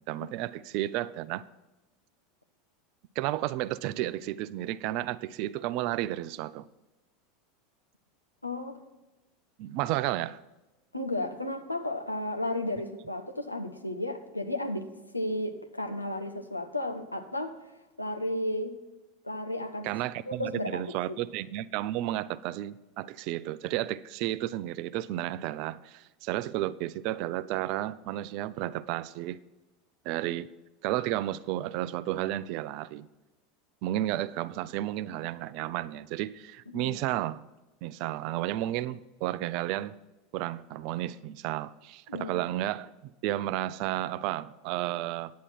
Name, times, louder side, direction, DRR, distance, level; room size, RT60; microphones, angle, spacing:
voice 1, 0.1-1.5 3.2-6.7 9.6-10.4 19.8-29.4 30.0-30.5 30.8-33.1 33.8-37.4 37.8-39.9 40.3-45.3, right 14 dB, 50° right, 0.4 m, -32 dB
voice 2, 8.4-8.8 10.9-17.6 18.0-18.8 19.2-19.9 20.3-21.2 36.7-37.0 42.1-42.4, left 1 dB, 85° left, 0.9 m, -33 dB
9.7 x 9.3 x 4.4 m
figure-of-eight pair, 80°, 0 cm